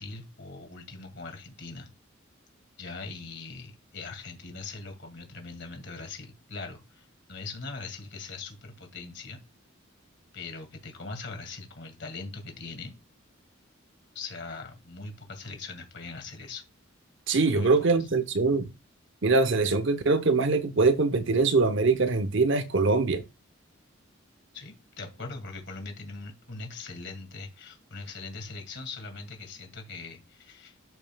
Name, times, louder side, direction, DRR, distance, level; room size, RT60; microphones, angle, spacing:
voice 1, 0.0-1.9 2.8-9.4 10.3-13.0 14.1-16.6 17.5-17.9 24.5-30.8, left 3 dB, 60° left, 2.3 m, -41 dB
voice 2, 17.3-18.7 19.2-23.2, right 3 dB, 65° right, 0.9 m, -23 dB
12.0 x 5.4 x 2.3 m
head